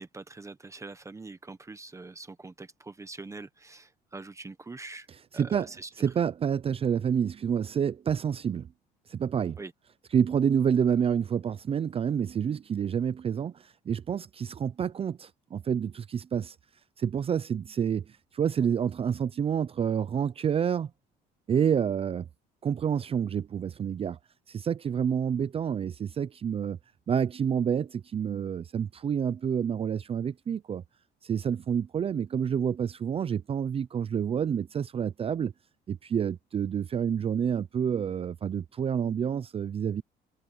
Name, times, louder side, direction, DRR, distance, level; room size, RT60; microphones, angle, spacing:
voice 1, 0.0-5.1 5.3-5.9 9.6-9.7, right 3 dB, 15° right, 1.1 m, -43 dB
voice 2, 5.3-5.7 6.0-8.7 9.1-9.6 10.1-16.6 17.0-18.0 18.3-20.9 21.5-22.3 22.6-24.2 24.5-26.8 27.1-30.8 31.2-35.5 35.9-40.0, right 8 dB, 35° right, 0.5 m, -28 dB
cardioid pair, 110°, 17 cm